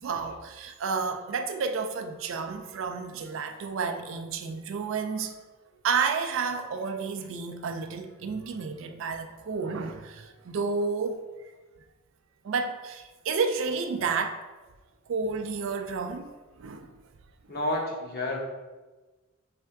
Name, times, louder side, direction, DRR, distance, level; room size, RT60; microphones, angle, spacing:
voice 1, 0.0-5.3 5.8-11.2 12.4-14.4 15.1-16.3 16.6-16.9, right 5 dB, 65° right, 7 dB, 0.3 m, -31 dB
voice 2, 17.5-18.4, left 1 dB, 50° left, -2 dB, 0.9 m, -30 dB
3.5 x 3.3 x 4.5 m, 1.2 s
head